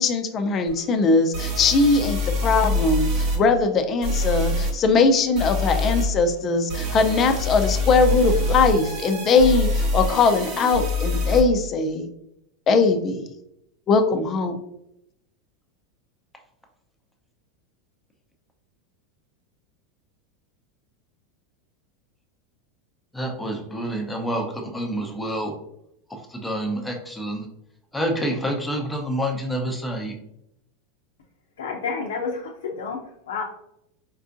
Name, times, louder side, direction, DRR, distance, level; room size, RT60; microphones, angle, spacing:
voice 1, 0.0-12.1 12.7-13.2 13.9-14.6, left 4 dB, 35° left, 7 dB, 0.4 m, -20 dB
sound 1, 0.7-0.8 1.3-3.4 4.0-4.7 5.3-6.1 6.7-11.4, left 1 dB, 65° right, 1.0 m, -25 dB
voice 2, 23.1-25.5 26.1-27.5 27.9-30.1, equal, 5° left, 1 dB, 0.8 m, -28 dB
voice 3, 31.6-33.4, left 5 dB, 85° left, -1 dB, 0.5 m, -30 dB
4.5 x 2.4 x 2.5 m, 0.79 s
hypercardioid pair, 105°, 0 cm